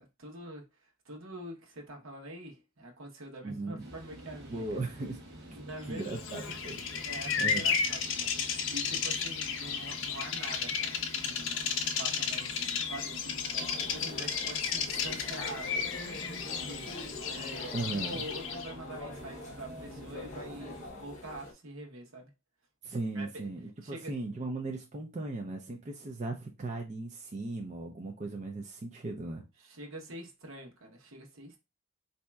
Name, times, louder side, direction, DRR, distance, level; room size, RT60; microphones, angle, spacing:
voice 1, 0.0-4.8 5.6-6.1 6.9-8.4 8.7-13.4 13.8-22.3 23.1-23.3 23.8-24.2 29.6-31.6, right 1 dB, 75° right, 1.0 m, -45 dB
voice 2, 3.4-3.9 4.5-5.2 5.9-7.7 17.7-18.2 22.8-29.4, right 2 dB, 35° right, 0.4 m, -37 dB
sound 1, 3.8-20.9, equal, 50° right, 1.2 m, -49 dB
Bird vocalization bird call bird song, 6.0-18.7, left 6 dB, 60° left, 0.5 m, -33 dB
sound 2, 13.5-21.5, left 2 dB, 35° left, 0.8 m, -45 dB
4.1 x 2.7 x 2.3 m
head